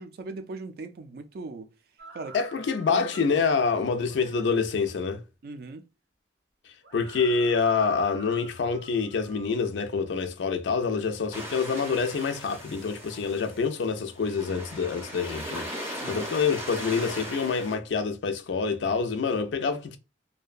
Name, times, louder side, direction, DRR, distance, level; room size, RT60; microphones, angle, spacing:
voice 1, 0.0-1.7 2.1-2.4 2.9-3.4 5.4-5.8 15.9-16.3, right 3 dB, 55° right, 0.3 m, -39 dB
sound 1, 2.0-4.5 6.8-9.7, right 3 dB, 90° right, 0.7 m, -48 dB
voice 2, 2.3-5.2 6.9-20.0, left 5 dB, 80° left, 0.4 m, -27 dB
sound 2, 11.3-17.8, equal, 15° right, 0.6 m, -38 dB
2.5 x 2.2 x 2.3 m
head